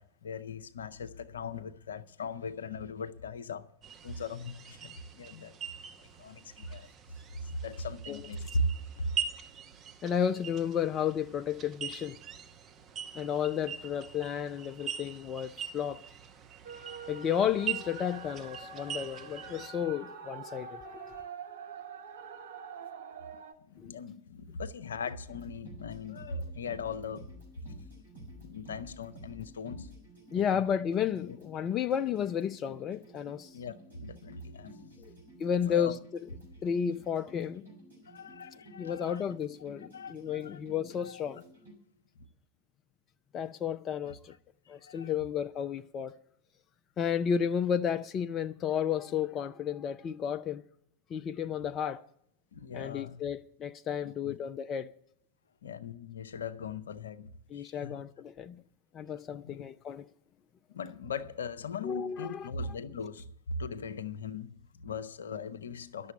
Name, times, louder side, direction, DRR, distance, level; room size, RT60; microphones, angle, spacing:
voice 1, 0.0-3.7 4.0-5.5 6.2-6.9 7.4-8.7 9.0-9.1 23.7-27.3 28.4-29.9 30.3-30.7 31.3-31.4 33.5-35.0 35.5-36.0 38.1-39.2 39.9-40.6 41.0-41.2 44.0-44.1 44.7-45.1 52.5-53.2 54.0-54.4 55.6-58.0 59.3-59.6 60.7-66.1, left 3 dB, 65° left, 0.6 m, -39 dB
sound 1, 3.8-19.7, right 9 dB, 30° right, 0.9 m, -42 dB
voice 2, 10.0-12.2 13.1-16.0 16.9-21.3 23.8-23.9 30.3-33.6 35.0-35.1 35.4-36.0 36.6-37.7 38.8-41.4 43.3-44.3 44.7-46.1 47.0-50.6 51.1-52.0 52.7-54.9 57.5-58.6 58.9-60.1 61.8-62.5, left 8 dB, 30° left, 0.4 m, -32 dB
sound 2, 16.6-23.5, right 7 dB, 60° right, 0.9 m, -45 dB
sound 3, 25.2-41.7, right 1 dB, 85° right, 5.0 m, -52 dB
11.5 x 6.9 x 9.6 m
figure-of-eight pair, 90°, 0 cm